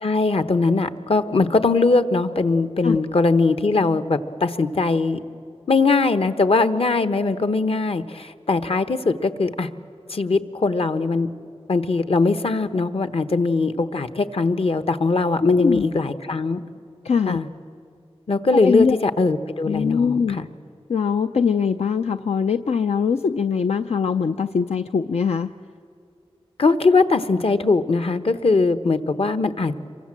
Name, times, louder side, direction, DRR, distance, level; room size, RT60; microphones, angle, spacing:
voice 1, 0.0-5.2 5.7-9.7 10.1-11.3 11.7-16.6 17.3-17.5 18.3-20.4 26.6-29.8, left 3 dB, 65° left, 11 dB, 1.1 m, -21 dB
voice 2, 15.4-15.8 17.0-17.4 18.5-19.0 19.7-20.4 20.9-25.5, left 6 dB, 85° left, 7 dB, 0.5 m, -22 dB
27.0 x 23.5 x 7.5 m, 2.5 s
wide cardioid pair, 60°, 11 cm